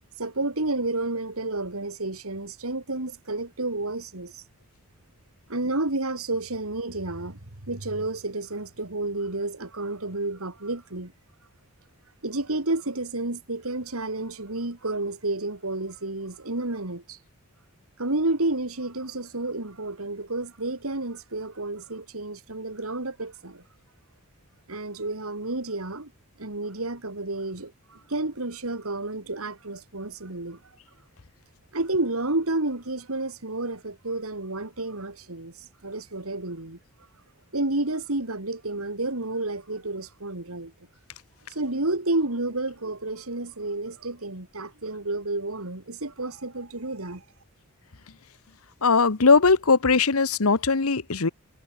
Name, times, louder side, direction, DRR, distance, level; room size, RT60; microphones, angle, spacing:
voice 1, 0.2-4.4 5.5-7.4 7.7-11.1 12.2-17.2 18.0-23.6 24.7-26.1 26.4-30.8 31.7-36.8 37.5-40.7 41.5-47.2, right 2 dB, 70° right, 2.9 m, -30 dB
voice 2, 48.8-51.3, left 4 dB, 70° left, 1.1 m, -20 dB
head